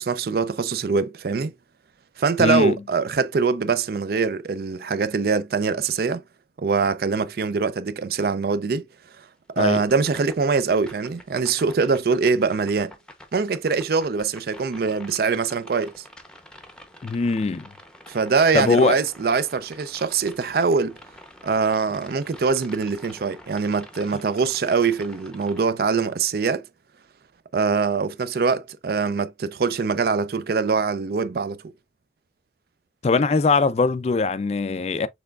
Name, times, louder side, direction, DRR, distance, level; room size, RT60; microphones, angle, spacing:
voice 1, 0.0-1.5 2.2-6.2 6.6-8.9 9.6-12.9 13.3-16.0 18.1-21.0 21.4-26.7 27.5-31.7, right 5 dB, 55° right, 0.4 m, -23 dB
voice 2, 2.4-2.8 9.6-9.8 17.0-17.7 18.5-19.0 33.0-35.1, left 4 dB, 35° left, 0.3 m, -21 dB
sound 1, 9.9-25.6, left 1 dB, 5° left, 0.7 m, -47 dB
5.9 x 3.3 x 2.3 m
head